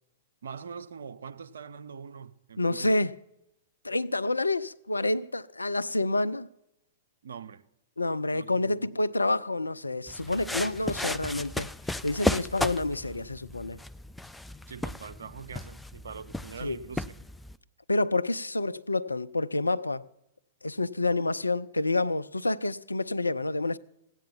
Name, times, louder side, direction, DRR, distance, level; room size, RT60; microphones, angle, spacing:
voice 1, 0.4-3.0 7.2-7.6 8.3-8.9 14.7-17.1, right 6 dB, 70° right, 0.7 m, -43 dB
voice 2, 2.6-3.1 3.8-6.5 8.0-11.7 12.0-13.8 16.6-16.8 17.9-20.0 20.6-23.8, left 2 dB, 85° left, 0.4 m, -28 dB
sound 1, 10.1-17.6, left 1 dB, 5° left, 0.4 m, -35 dB
15.5 x 9.0 x 7.2 m
figure-of-eight pair, 105°, 0 cm